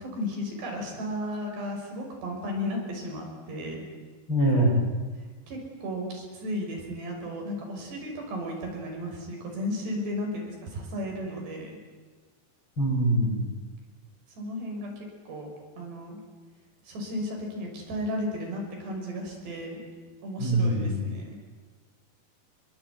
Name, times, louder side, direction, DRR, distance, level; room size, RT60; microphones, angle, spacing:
voice 1, 0.0-3.8 5.5-11.8 14.4-14.9 15.3-16.2 16.9-19.8 20.2-21.4, left 1 dB, 75° right, 1 dB, 8.0 m, -34 dB
voice 2, 4.3-4.8 12.8-13.4 20.4-21.0, right 1 dB, 25° left, -3 dB, 8.7 m, -23 dB
27.5 x 22.5 x 9.5 m, 1.4 s
omnidirectional pair, 4.9 m